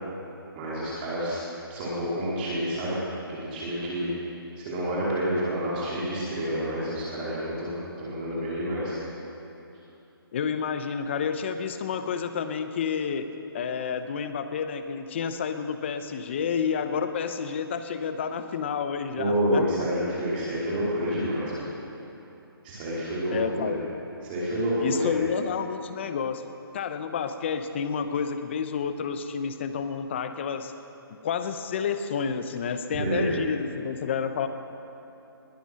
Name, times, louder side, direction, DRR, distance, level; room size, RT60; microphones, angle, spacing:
voice 1, 0.5-1.4 1.7-3.0 3.3-4.1 4.6-9.0 19.2-21.7 22.6-23.8 24.2-25.1 33.0-33.3, equal, 25° right, -7 dB, 2.6 m, -28 dB
voice 2, 10.3-19.9 23.3-23.8 24.8-26.4 26.7-30.7 31.2-34.5, left 6 dB, 30° left, 9 dB, 0.7 m, -30 dB
20.0 x 9.0 x 6.4 m, 2.9 s
hypercardioid pair, 165°, 13 cm